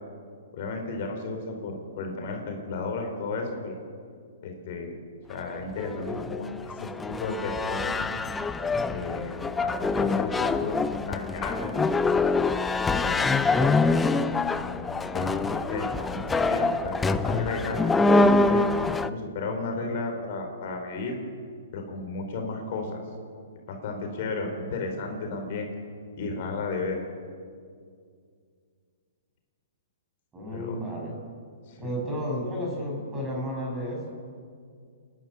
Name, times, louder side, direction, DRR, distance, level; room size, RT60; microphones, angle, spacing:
voice 1, 0.5-3.7 4.4-5.0 5.3-7.9 8.8-10.8 11.1-11.8 12.9-13.7 14.6-21.1 21.7-23.0 23.7-25.7 26.2-27.0 30.5-30.8 31.7-31.9, left 3 dB, 50° left, 3 dB, 4.5 m, -34 dB
sound 1, 5.6-19.1, left 3 dB, 10° left, 0.6 m, -25 dB
voice 2, 30.3-31.2 31.8-34.1, equal, 15° right, 0 dB, 6.4 m, -32 dB
28.0 x 12.0 x 9.7 m, 2.2 s
hypercardioid pair, 145°, 0 cm